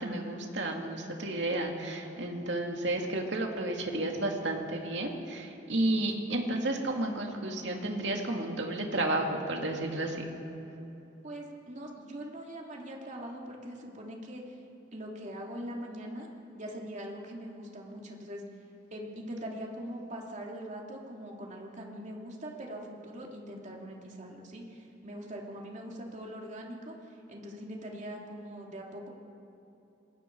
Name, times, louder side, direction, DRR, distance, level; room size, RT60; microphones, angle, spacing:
voice 1, 0.0-10.3, right 1 dB, 70° right, 2 dB, 2.5 m, -32 dB
voice 2, 11.2-14.6 14.9-16.3 16.5-18.4 18.9-29.1, equal, 40° right, -1 dB, 2.8 m, -42 dB
27.0 x 20.5 x 4.7 m, 2.9 s
head